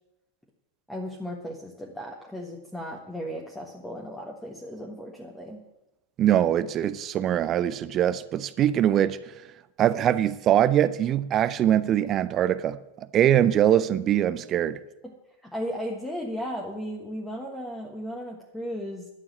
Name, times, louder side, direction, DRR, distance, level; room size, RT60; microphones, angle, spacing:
voice 1, 0.9-5.6 15.0-15.1 15.4-19.1, equal, 5° left, 1.5 m, -35 dB
voice 2, 6.2-9.2 9.8-12.8 13.1-14.8, right 11 dB, 30° right, 0.5 m, -22 dB
11.0 x 7.2 x 9.8 m
figure-of-eight pair, 90°, 0 cm